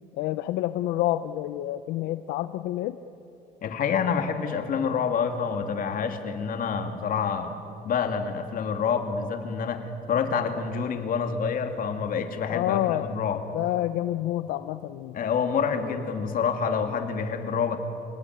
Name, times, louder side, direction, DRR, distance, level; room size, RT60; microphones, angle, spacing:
voice 1, 0.2-3.0 12.5-13.1 13.5-15.2 15.8-16.0, left 14 dB, 85° left, 12 dB, 0.6 m, -28 dB
voice 2, 3.6-7.5 7.8-13.4 15.1-17.8, left 6 dB, 55° left, 6 dB, 2.6 m, -27 dB
26.5 x 19.5 x 9.6 m, 2.9 s
cardioid pair, 110°, 17 cm